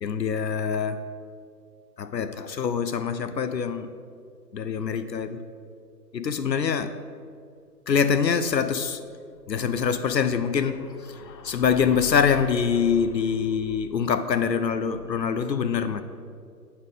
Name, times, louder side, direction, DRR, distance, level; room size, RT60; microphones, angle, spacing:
voice 1, 0.0-1.0 2.0-3.9 4.5-5.4 6.1-6.9 7.9-9.0 9.5-16.0, left 6 dB, 85° left, 11 dB, 0.6 m, -25 dB
9.3 x 4.3 x 5.2 m, 2.2 s
figure-of-eight pair, 150°, 50 cm